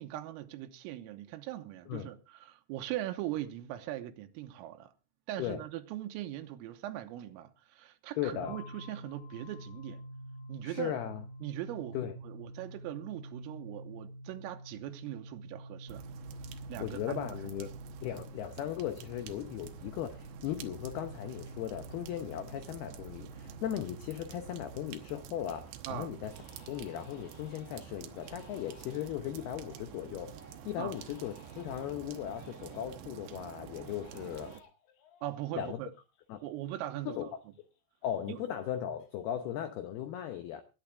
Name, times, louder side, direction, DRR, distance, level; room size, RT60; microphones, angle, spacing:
voice 1, 0.0-4.9 5.3-10.0 10.5-11.0 11.4-16.1 16.7-17.3 25.9-26.1 30.8-31.0 35.2-35.9 36.4-37.3 38.3-38.4, right 14 dB, 90° right, 3.6 m, -40 dB
voice 2, 8.2-8.6 10.6-11.2 11.9-12.1 16.8-17.7 18.0-26.3 26.7-30.4 30.7-34.6 35.6-35.8 36.3-36.4 37.1-37.3 38.0-40.6, left 11 dB, 85° left, 2.2 m, -37 dB
sound 1, 8.4-24.9, right 1 dB, 35° left, 4.4 m, -48 dB
sound 2, 15.9-34.6, right 9 dB, 75° right, 2.9 m, -49 dB
Crying sobbing, 23.0-23.1 23.6-24.0 24.4-25.3 25.6-25.7 26.2-33.1 33.6-36.9 37.2-38.7 39.0-39.5, left 6 dB, 60° left, 3.7 m, -60 dB
20.0 x 9.6 x 3.5 m
omnidirectional pair, 5.9 m